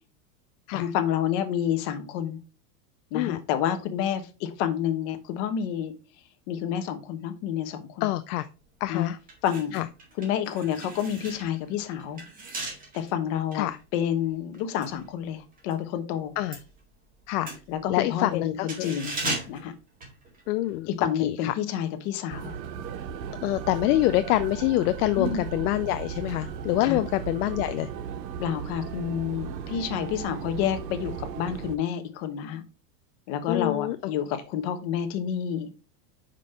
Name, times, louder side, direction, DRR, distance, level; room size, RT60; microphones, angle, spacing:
voice 1, 0.7-2.4 3.1-5.9 6.5-8.1 8.9-9.1 9.4-9.9 10.2-12.2 12.9-16.3 17.7-19.2 19.5-19.7 20.9-22.6 25.2-25.4 26.8-27.0 28.4-32.6 33.3-35.7, left 9 dB, 45° left, 1.1 m, -29 dB
voice 2, 8.0-8.5 8.8-9.2 9.7-9.8 13.5-13.8 16.4-16.6 17.3-17.5 17.9-18.9 19.2-19.4 20.5-21.5 23.4-27.9 33.5-34.0, left 16 dB, 65° left, 0.6 m, -26 dB
sound 1, 8.6-8.8 9.2-15.8 16.1-20.7 21.0-21.2, right 2 dB, 15° right, 1.9 m, -38 dB
sound 2, 22.3-31.8, right 8 dB, 90° right, 0.9 m, -36 dB
5.3 x 5.2 x 4.2 m
supercardioid pair, 145°, 49 cm